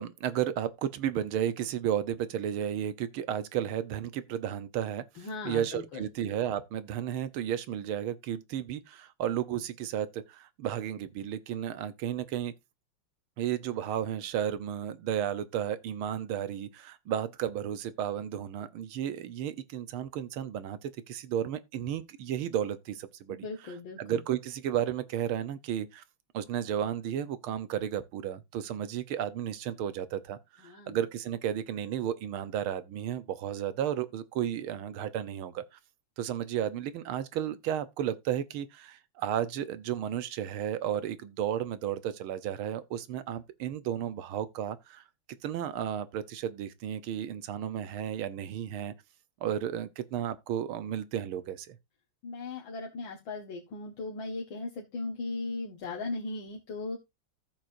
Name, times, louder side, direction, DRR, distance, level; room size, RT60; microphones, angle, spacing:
voice 1, 0.0-12.5 13.4-26.0 26.3-35.8 36.2-45.0 45.4-48.9 49.4-51.8, right 10 dB, 85° right, 1.8 m, -33 dB
voice 2, 5.2-6.1 23.3-24.2 30.6-31.0 52.2-57.0, left 3 dB, 70° left, 2.3 m, -38 dB
14.0 x 7.6 x 2.6 m
omnidirectional pair, 2.3 m